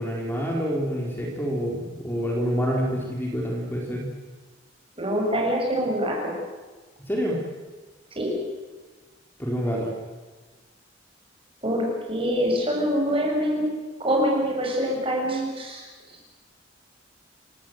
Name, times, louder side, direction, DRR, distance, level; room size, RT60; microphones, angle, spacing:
voice 1, 0.0-4.1 7.1-7.4 9.4-9.9, equal, 10° left, -2 dB, 3.9 m, -27 dB
voice 2, 5.0-6.3 8.2-8.3 11.6-13.7 14.0-15.8, equal, 30° right, 0 dB, 7.1 m, -25 dB
28.0 x 18.5 x 7.9 m, 1.3 s
head